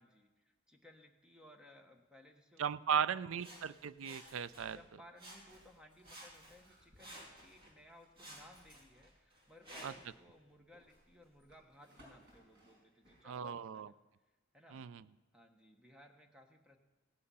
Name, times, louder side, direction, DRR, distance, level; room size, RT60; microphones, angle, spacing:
voice 1, 0.0-2.7 3.1-3.7 4.7-13.9 14.5-14.9 15.3-16.8, left 1 dB, 5° right, 3 dB, 1.0 m, -61 dB
voice 2, 2.6-4.8 9.8-9.9 13.2-13.9 14.7-15.0, right 7 dB, 70° right, 17 dB, 0.4 m, -37 dB
Sawing, 3.4-4.9 5.2-5.8 6.0-7.7 8.2-10.2 10.8-10.9, equal, 25° right, 2.5 m, -54 dB
sound 1, 5.9-8.1 9.4-13.2, equal, 55° right, 5.2 m, -66 dB
16.5 x 8.7 x 5.6 m, 1.1 s
head